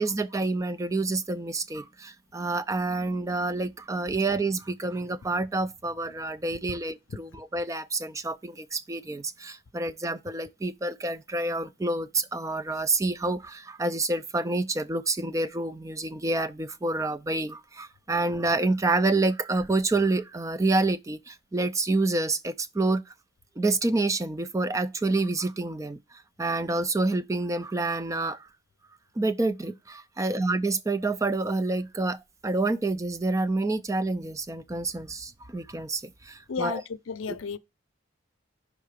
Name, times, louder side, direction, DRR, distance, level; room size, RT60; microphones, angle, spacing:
voice 1, 0.0-23.0 23.6-28.5 29.2-36.8, right 2 dB, 15° right, 0.3 m, -28 dB
voice 2, 36.5-37.6, left 5 dB, 90° left, 0.5 m, -33 dB
5.7 x 3.6 x 5.1 m
head